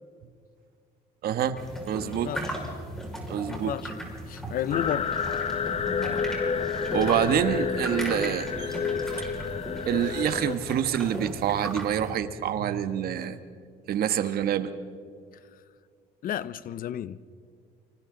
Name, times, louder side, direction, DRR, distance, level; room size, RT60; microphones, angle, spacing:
voice 1, 1.2-1.6 1.9-2.3 2.9-3.7 4.4-4.5 6.9-8.5 9.9-13.4 13.9-14.7, right 9 dB, 65° right, 1.4 m, -27 dB
sound 1, 1.5-12.1, right 1 dB, 5° left, 5.5 m, -37 dB
voice 2, 2.0-2.5 3.4-3.9 4.3-5.1 16.2-17.2, left 10 dB, 55° left, 0.7 m, -32 dB
sound 2, 4.7-10.5, left 6 dB, 40° left, 1.0 m, -30 dB
sound 3, 8.6-8.9 10.0-11.7 12.9-13.0 13.2-13.3, right 9 dB, 85° right, 2.8 m, -49 dB
30.0 x 25.0 x 4.0 m
cardioid pair, 110°, 17 cm